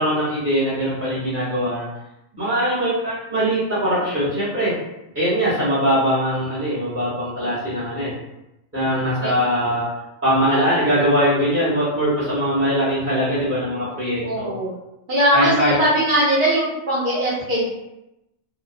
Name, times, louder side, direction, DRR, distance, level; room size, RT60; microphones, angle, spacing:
voice 1, 0.0-1.9 2.4-4.8 5.1-8.1 8.7-9.9 10.2-14.5 15.3-15.8, equal, 15° right, -12 dB, 0.6 m, -21 dB
voice 2, 14.2-14.7 15.1-17.7, right 1 dB, 55° right, -6 dB, 0.6 m, -20 dB
2.8 x 2.0 x 2.4 m, 0.90 s
omnidirectional pair, 1.5 m